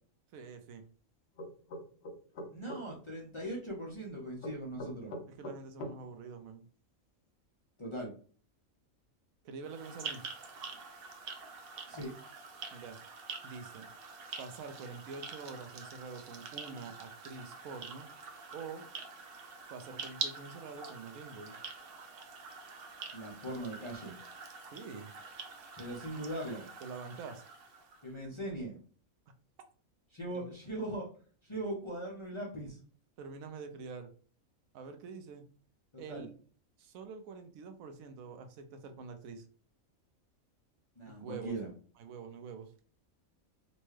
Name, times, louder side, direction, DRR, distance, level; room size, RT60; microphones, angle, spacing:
voice 1, 0.3-0.8 5.3-6.6 9.4-10.2 12.7-13.0 13.4-13.9 14.4-18.1 18.5-18.9 19.7-21.6 24.7-25.1 26.8-27.4 30.3-30.5 33.2-34.1 34.7-35.4 36.0-36.3 36.8-39.4 41.1-41.6 42.0-42.7, right 5 dB, 80° right, 7 dB, 1.0 m, -46 dB
sound 1, 1.4-2.8 4.4-6.0, equal, 55° left, 0.9 m, -42 dB
voice 2, 2.5-5.1 7.8-8.1 11.9-12.1 23.1-24.1 25.8-26.6 28.0-28.8 30.1-31.1 31.4-32.8 36.1-36.3 41.0-41.7, right 1 dB, 30° left, -3 dB, 0.5 m, -40 dB
sound 2, 9.6-28.1, right 5 dB, 55° right, 0.7 m, -46 dB
4.0 x 2.2 x 3.1 m, 0.42 s
omnidirectional pair, 1.5 m